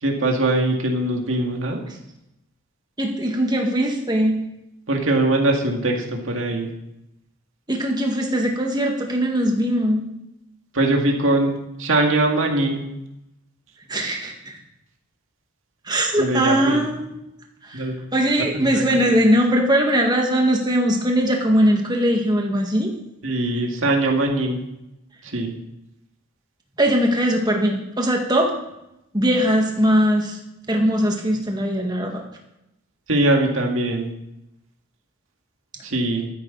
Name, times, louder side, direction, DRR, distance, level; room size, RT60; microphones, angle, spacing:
voice 1, 0.0-1.8 4.9-6.7 10.7-12.8 16.2-16.8 17.7-18.0 18.5-19.1 23.2-24.6 25.2-25.5 33.1-34.1 35.8-36.3, right 2 dB, 65° right, 1 dB, 2.1 m, -21 dB
voice 2, 3.0-4.4 7.7-10.0 13.9-14.6 15.8-17.2 17.6-22.9 26.8-28.6 29.1-30.4 30.7-32.2, equal, 20° right, 1 dB, 1.7 m, -20 dB
13.0 x 10.0 x 4.0 m, 0.87 s
head